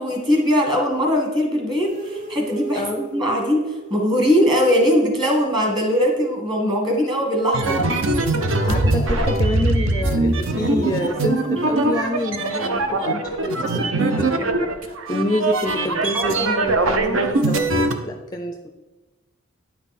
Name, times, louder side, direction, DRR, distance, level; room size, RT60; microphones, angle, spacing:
voice 1, 0.0-7.9 8.6-8.9 9.2-9.3 16.1-16.6, equal, 20° right, 1 dB, 1.6 m, -21 dB
sound 1, 1.8-4.5 7.9-13.1, right 2 dB, 40° right, 0.9 m, -37 dB
sound 2, 7.5-17.9, right 2 dB, 65° right, 0.7 m, -21 dB
voice 2, 8.6-18.7, left 1 dB, 20° left, 5 dB, 0.5 m, -28 dB
9.8 x 5.9 x 4.2 m, 1.1 s
head